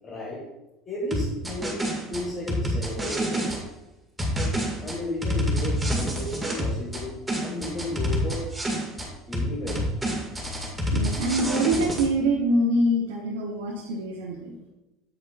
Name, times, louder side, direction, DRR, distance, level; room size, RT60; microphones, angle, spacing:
voice 1, 0.0-0.4 0.9-1.8 2.1-3.5 4.8-7.1 7.4-8.5 9.3-9.8, left 1 dB, 30° left, -4 dB, 1.9 m, -33 dB
sound 1, 1.1-3.6 4.2-7.0 7.3-9.1 9.3-12.1, equal, 5° right, 2.0 m, -27 dB
voice 2, 10.9-14.6, right 1 dB, 65° right, -2 dB, 0.9 m, -25 dB
8.1 x 8.0 x 2.5 m, 0.97 s
figure-of-eight pair, 70°, 0 cm